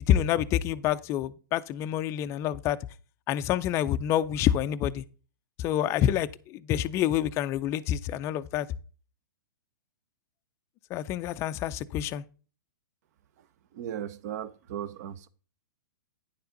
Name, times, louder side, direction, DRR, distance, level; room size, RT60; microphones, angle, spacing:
voice 1, 0.1-2.8 3.3-5.0 5.6-8.7 10.9-12.2, left 11 dB, 25° left, 0.4 m, -27 dB
voice 2, 13.7-15.3, right 10 dB, 50° right, 0.8 m, -37 dB
9.6 x 6.9 x 3.9 m
hypercardioid pair, 145°, 11 cm